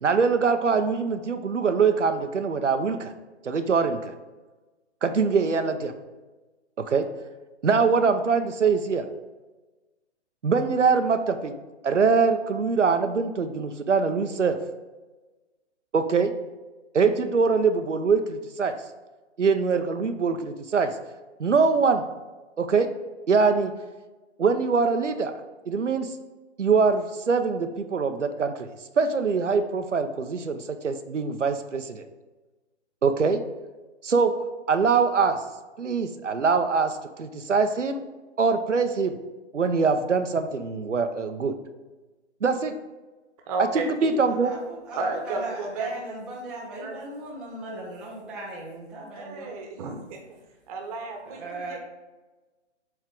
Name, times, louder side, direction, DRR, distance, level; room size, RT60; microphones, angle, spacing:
voice 1, 0.0-3.1 3.4-4.1 5.0-5.9 6.9-7.0 7.6-9.1 10.4-11.5 11.8-14.6 15.9-16.3 16.9-18.7 19.4-20.9 21.4-22.0 22.6-22.9 23.3-23.7 24.4-25.3 25.7-26.1 26.6-32.0 33.0-33.4 34.0-34.3 34.7-35.4 35.8-38.0 38.4-39.1 39.5-41.5 42.4-42.7 43.7-44.5, right 5 dB, 85° right, 8 dB, 0.7 m, -23 dB
voice 2, 43.5-44.1 44.9-46.1 46.8-47.0 49.1-50.2 50.7-51.8, right 3 dB, 30° right, 2 dB, 1.1 m, -32 dB
voice 3, 44.3-45.0 45.2-49.5 51.3-51.8, right 2 dB, ahead, -8 dB, 0.5 m, -38 dB
7.6 x 3.6 x 3.6 m, 1.2 s
figure-of-eight pair, 130°, 36 cm